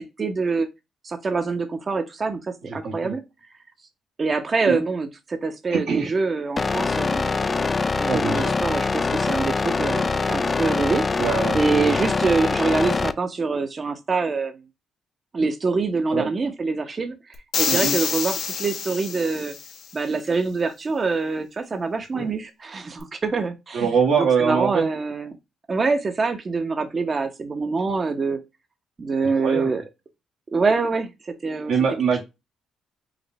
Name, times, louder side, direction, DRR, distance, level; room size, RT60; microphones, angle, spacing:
voice 1, 0.2-0.7 1.0-3.2 4.2-7.4 8.0-11.0 11.5-14.5 15.3-17.1 17.6-19.5 19.9-23.8 24.4-25.3 25.7-28.4 29.0-29.8 30.5-31.7, right 4 dB, 35° right, 0.8 m, -25 dB
voice 2, 2.6-3.2 4.6-4.8 5.7-6.1 8.1-8.5 11.2-11.9 16.1-16.3 17.7-17.9 22.1-22.3 23.7-24.9 29.2-29.7 31.7-32.2, right 6 dB, 75° right, 1.4 m, -24 dB
sound 1, 6.6-13.1, left 4 dB, 30° left, 0.3 m, -23 dB
sound 2, 17.5-19.8, left 6 dB, 70° left, 0.9 m, -27 dB
5.0 x 2.5 x 3.1 m
cardioid pair, 90°, 0 cm